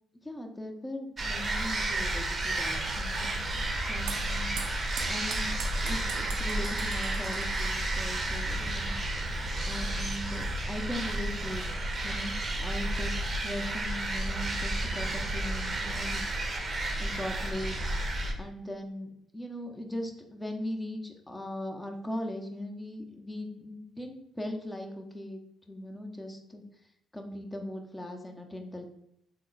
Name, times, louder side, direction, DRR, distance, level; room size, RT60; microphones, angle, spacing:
voice 1, 0.2-4.6 5.0-5.5 5.8-8.9 9.6-11.6 12.0-16.2 17.0-17.8 18.4-26.6 27.1-28.9, left 1 dB, 15° left, 3 dB, 0.7 m, -39 dB
sound 1, 1.2-18.3, right 1 dB, 40° right, 0.6 m, -32 dB
sound 2, 3.0-8.7, right 5 dB, 85° right, 0.4 m, -44 dB
3.7 x 2.1 x 3.9 m, 0.76 s
hypercardioid pair, 55°, 0 cm